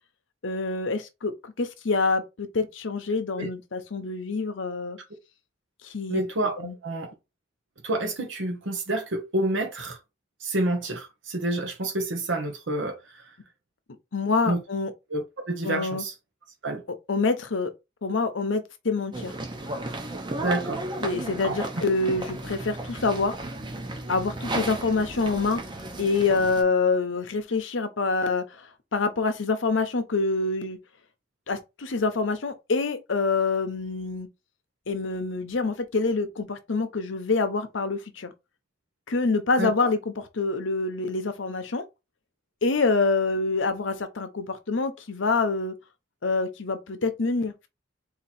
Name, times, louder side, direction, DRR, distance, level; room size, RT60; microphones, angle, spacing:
voice 1, 0.4-5.0 5.8-6.2 6.6-6.7 14.1-14.9 15.6-16.0 17.1-17.7 18.0-19.3 21.0-23.4 24.1-25.6 26.0-28.7 28.9-30.8 31.5-34.3 34.9-38.3 39.1-41.8 42.6-45.7 46.2-47.7, left 3 dB, 75° left, 0.8 m, -26 dB
voice 2, 6.1-7.1 7.8-10.0 10.4-13.2 14.5-14.6 15.1-16.1 16.6-16.8 20.4-20.8 21.4-21.6 39.6-39.9, right 1 dB, 75° right, 1.1 m, -28 dB
sound 1, 19.1-26.6, right 2 dB, 25° right, 0.8 m, -34 dB
4.0 x 2.9 x 4.2 m
head